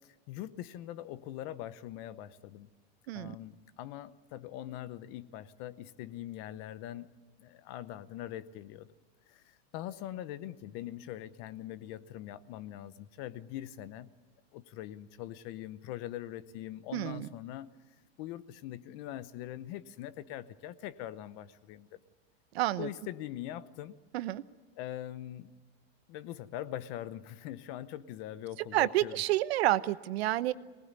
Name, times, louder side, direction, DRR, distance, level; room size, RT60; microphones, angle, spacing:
voice 1, 0.0-2.7 3.1-7.1 7.4-8.9 9.3-14.1 14.5-17.7 18.2-22.0 22.8-24.0 24.8-25.5 26.1-29.2, left 12 dB, 40° left, 16 dB, 0.9 m, -42 dB
voice 2, 16.9-17.3 22.5-22.9 24.1-24.4 28.7-30.5, right 15 dB, 75° right, 15 dB, 1.0 m, -29 dB
23.5 x 19.5 x 9.7 m, 1.4 s
supercardioid pair, 170°, 32 cm